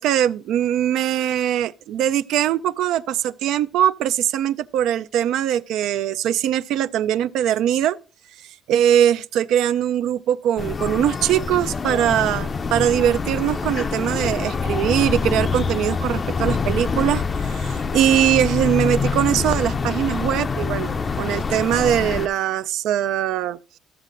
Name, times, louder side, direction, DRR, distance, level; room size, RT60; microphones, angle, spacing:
voice 1, 0.0-8.0 8.7-23.6, right 10 dB, 75° right, 0.4 m, -21 dB
sound 1, 10.6-22.3, left 5 dB, 30° left, 0.4 m, -25 dB
14.0 x 7.4 x 2.5 m
cardioid pair, 120°, 0 cm